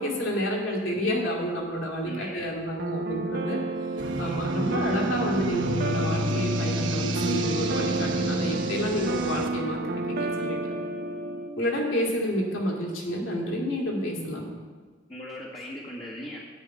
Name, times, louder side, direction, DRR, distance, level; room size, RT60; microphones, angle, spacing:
voice 1, 0.0-3.6 4.2-9.8 10.1-10.7 11.6-14.5, equal, 90° left, -1 dB, 2.5 m, -29 dB
voice 2, 2.0-2.6 4.2-4.4 15.1-16.4, equal, 25° left, -5 dB, 1.5 m, -39 dB
sound 1, 2.8-11.5, right 2 dB, 50° right, 0.8 m, -31 dB
sound 2, 3.3-11.4, left 1 dB, 90° right, 1.3 m, -34 dB
sound 3, 4.0-9.5, right 2 dB, 70° right, 1.2 m, -32 dB
10.0 x 6.5 x 8.9 m, 1.4 s
head